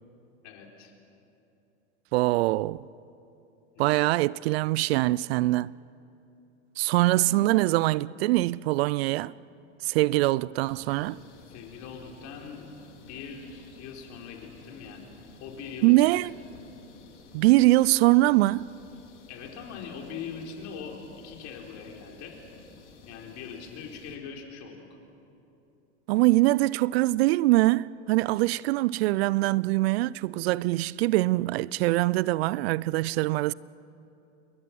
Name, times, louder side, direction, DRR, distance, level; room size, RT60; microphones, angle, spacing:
voice 1, 0.4-0.9 3.7-4.0 7.0-7.3 10.7-12.7 13.1-15.0 15.4-16.0 19.3-22.4 23.1-24.8, left 6 dB, 50° left, 4.5 m, -42 dB
voice 2, 2.1-2.9 3.8-5.7 6.8-9.3 9.8-11.2 15.8-16.3 17.3-18.7 26.1-33.5, right 19 dB, 60° right, 0.5 m, -23 dB
sound 1, 10.6-24.2, left 4 dB, 75° left, 3.0 m, -52 dB
28.5 x 22.5 x 6.2 m
hypercardioid pair, 85°, 36 cm